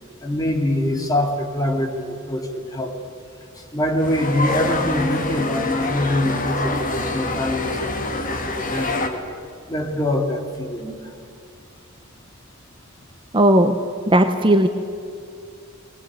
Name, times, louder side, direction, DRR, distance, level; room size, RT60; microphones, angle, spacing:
voice 1, 0.2-2.9 3.7-9.2 9.7-11.0, left 1 dB, 15° left, 2 dB, 2.8 m, -24 dB
sound 1, 4.0-9.1, left 2 dB, 40° left, 2.4 m, -25 dB
voice 2, 13.3-13.7 14.1-14.7, right 1 dB, 25° right, 6 dB, 0.9 m, -15 dB
21.0 x 20.5 x 9.0 m, 2.4 s
head